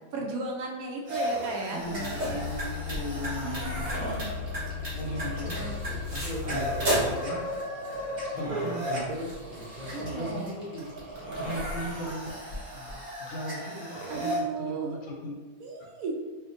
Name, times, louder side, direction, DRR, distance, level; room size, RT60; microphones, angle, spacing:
voice 1, 0.1-2.4 3.4-4.4 9.9-10.6 14.1-15.0 15.6-16.2, right 3 dB, 75° right, 0 dB, 0.8 m, -35 dB
sound 1, 1.1-14.4, equal, 90° right, 0.4 m, -35 dB
voice 2, 1.7-3.9 4.9-5.8 6.1-7.5 8.3-9.1 10.0-10.9 11.3-12.4 12.7-15.3, equal, 85° left, 0 dB, 1.5 m, -38 dB
sound 2, 1.8-7.2, left 2 dB, 45° right, 1.7 m, -32 dB
5.0 x 2.1 x 2.6 m, 1.3 s
omnidirectional pair, 2.1 m